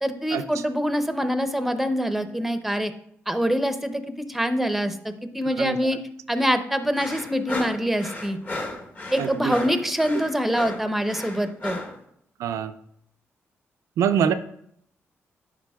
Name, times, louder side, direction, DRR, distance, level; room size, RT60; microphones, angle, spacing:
voice 1, 0.0-2.9 3.3-6.0 6.3-8.4 9.1-11.8, equal, 5° right, 8 dB, 0.6 m, -25 dB
sound 1, 7.0-12.0, left 2 dB, 35° left, 1.2 m, -34 dB
voice 2, 9.2-9.5 12.4-12.7 14.0-14.3, right 8 dB, 85° right, 10 dB, 0.3 m, -24 dB
10.5 x 4.1 x 2.3 m, 0.70 s
cardioid pair, 90°, 5 cm